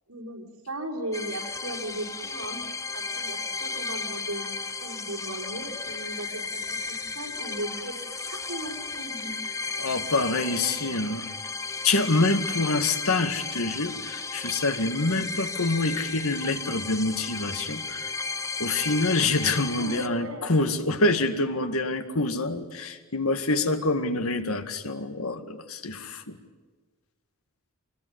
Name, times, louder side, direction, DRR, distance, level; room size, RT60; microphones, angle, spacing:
voice 1, 0.1-2.7 2.9-4.5 4.8-8.0 8.3-9.3 19.8-20.5, right 1 dB, 90° right, 1 dB, 5.1 m, -37 dB
sound 1, 1.1-20.1, left 4 dB, 15° left, 0.8 m, -34 dB
voice 2, 9.8-11.3 11.8-18.1 18.6-26.4, left 2 dB, 75° left, 8 dB, 2.0 m, -26 dB
25.0 x 20.5 x 9.6 m, 1.4 s
head